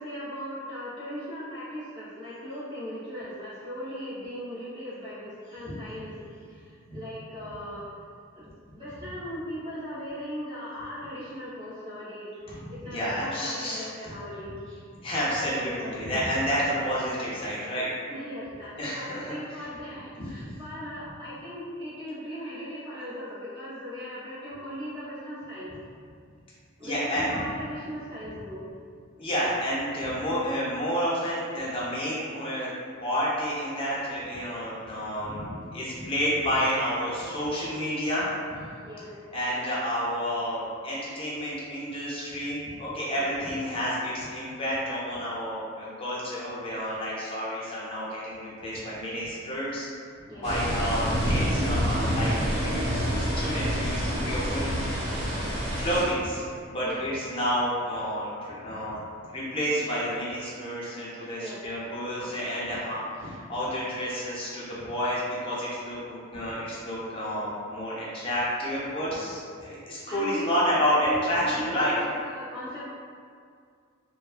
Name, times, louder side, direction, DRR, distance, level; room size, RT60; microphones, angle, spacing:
voice 1, 0.0-6.2 6.5-6.6 6.9-7.9 8.3-12.3 12.8-14.6 15.2-15.9 18.1-25.7 26.8-28.6 38.8-39.1 43.1-43.2 50.3-50.5 56.8-57.1 61.4-61.6 62.2-62.3 69.1-69.3 70.1-70.6 71.0-72.8, equal, 25° right, -12 dB, 0.6 m, -38 dB
voice 2, 12.5-14.1 14.7-17.9 18.8-20.6 22.3-22.6 23.0-23.1 26.8-27.4 28.2-28.3 29.2-32.7 33.0-38.7 39.3-49.9 50.3-54.7 55.8-59.0 59.3-71.9, equal, 25° left, -8 dB, 0.6 m, -30 dB
sound 1, 50.4-56.0, equal, 55° right, 1.1 m, -27 dB
2.5 x 2.3 x 2.4 m, 2.2 s
head